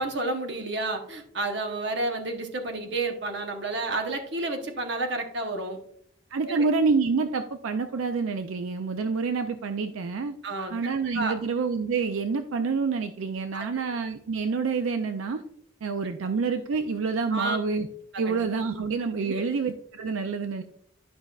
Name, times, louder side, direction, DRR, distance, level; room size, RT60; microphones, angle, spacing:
voice 1, 0.0-5.8 6.4-6.7 10.4-11.3 13.5-13.8 17.3-17.6 18.1-18.4 19.2-19.5, right 2 dB, 55° right, 4 dB, 0.9 m, -31 dB
voice 2, 6.3-10.4 10.7-15.4 15.8-17.9 18.2-20.6, right 4 dB, 80° right, 8 dB, 0.4 m, -27 dB
11.0 x 5.3 x 2.4 m, 0.69 s
head